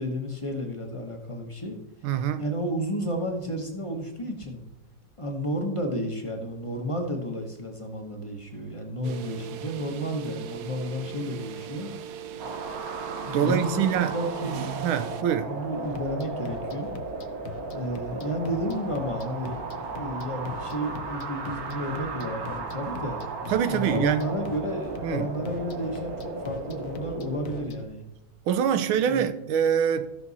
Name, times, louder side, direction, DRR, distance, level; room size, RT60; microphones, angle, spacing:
voice 1, 0.0-1.8 2.4-4.6 5.2-11.9 13.2-14.6 15.5-16.9 17.7-19.6 19.9-23.2 23.7-28.1 29.0-29.2, equal, 25° left, 0.8 m, -32 dB
voice 2, 2.0-2.5 13.3-14.1 14.8-15.5 23.5-24.2 25.0-25.3 28.5-30.1, right 8 dB, 90° right, 1.5 m, -24 dB
sound 1, 9.0-15.2, right 9 dB, 70° right, 0.9 m, -39 dB
sound 2, 12.4-27.7, right 4 dB, 55° right, 1.4 m, -36 dB
sound 3, 15.8-27.8, left 5 dB, 60° left, 0.9 m, -43 dB
14.0 x 6.0 x 4.1 m
omnidirectional pair, 2.2 m